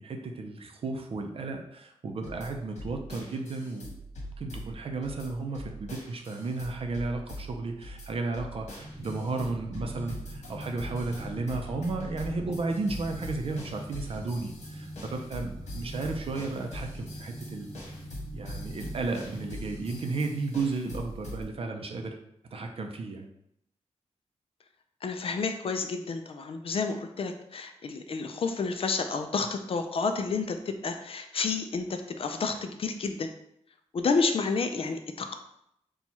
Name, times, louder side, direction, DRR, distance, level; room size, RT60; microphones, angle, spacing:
voice 1, 0.0-3.9 4.4-17.8 18.3-22.1 22.5-23.3, right 3 dB, 55° right, 4 dB, 0.6 m, -33 dB
sound 1, 2.2-21.4, equal, 75° left, 1.3 m, -43 dB
sound 2, 8.8-20.0, right 1 dB, 30° right, 0.9 m, -43 dB
voice 2, 25.0-33.3 33.9-35.3, left 4 dB, 55° left, 6 dB, 0.4 m, -30 dB
4.4 x 2.3 x 4.1 m, 0.76 s
wide cardioid pair, 140°, 12 cm